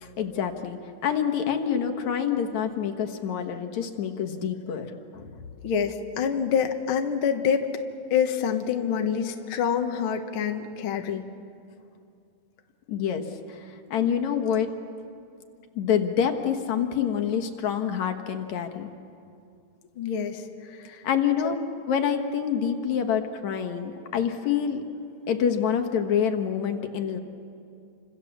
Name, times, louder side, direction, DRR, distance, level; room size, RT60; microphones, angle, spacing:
voice 1, 0.0-5.3 12.9-14.7 15.8-18.9 21.0-21.6 21.9-24.8 25.3-27.2, left 8 dB, 70° left, 5 dB, 2.7 m, -27 dB
voice 2, 5.6-7.7 8.1-11.3 20.0-20.4 20.7-21.0 21.4-21.5, left 7 dB, 55° left, 5 dB, 1.8 m, -26 dB
29.5 x 26.0 x 7.3 m, 2.4 s
omnidirectional pair, 3.5 m